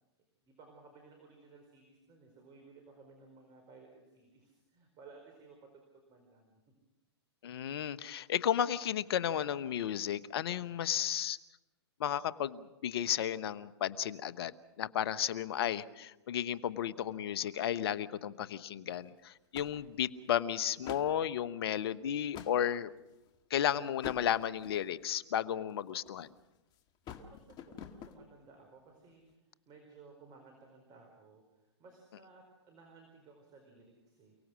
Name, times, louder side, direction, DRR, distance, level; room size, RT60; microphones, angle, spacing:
voice 1, 0.4-6.6 27.2-34.3, right 4 dB, 30° right, 4 dB, 4.7 m, -58 dB
voice 2, 7.4-11.4 12.0-22.9 23.5-26.3, left 10 dB, 60° left, 15 dB, 1.1 m, -33 dB
sound 1, 18.9-19.1 19.5-20.2 20.7-21.2 21.9-22.6 23.2-23.5 24.0-25.0 25.7-26.4 26.7-28.2, left 8 dB, 30° left, 2.0 m, -47 dB
29.5 x 18.0 x 6.4 m, 1.0 s
hypercardioid pair, 125°, 14 cm